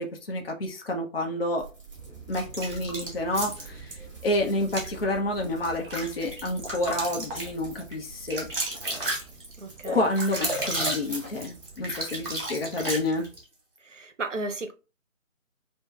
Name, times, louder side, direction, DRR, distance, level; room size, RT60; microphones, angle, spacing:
voice 1, 0.0-1.7 2.3-3.9 4.2-8.5 9.9-13.3, left 1 dB, 45° left, 0.7 m, -29 dB
sound 1, 1.6-12.4, right 3 dB, 25° right, 1.9 m, -47 dB
sound 2, 1.9-13.4, right 4 dB, ahead, 1.1 m, -50 dB
sound 3, 2.3-4.0 4.6-4.9 5.4-13.4, right 1 dB, 40° right, 1.4 m, -33 dB
voice 2, 9.6-10.1 13.8-14.7, right 3 dB, 65° right, 0.7 m, -34 dB
4.8 x 2.2 x 2.3 m
figure-of-eight pair, 155°, 41 cm